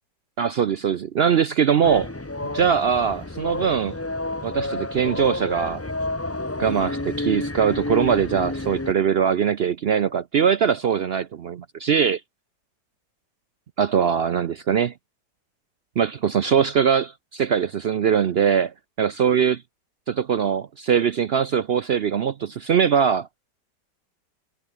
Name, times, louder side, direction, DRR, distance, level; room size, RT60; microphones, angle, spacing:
voice 1, 0.4-2.1 2.5-3.9 4.4-5.8 6.6-12.2 13.8-14.9 16.0-19.6 20.1-23.3, right 7 dB, 75° right, 0.5 m, -21 dB
sound 1, 1.8-8.9, left 2 dB, 15° left, 0.6 m, -30 dB
omnidirectional pair, 1.8 m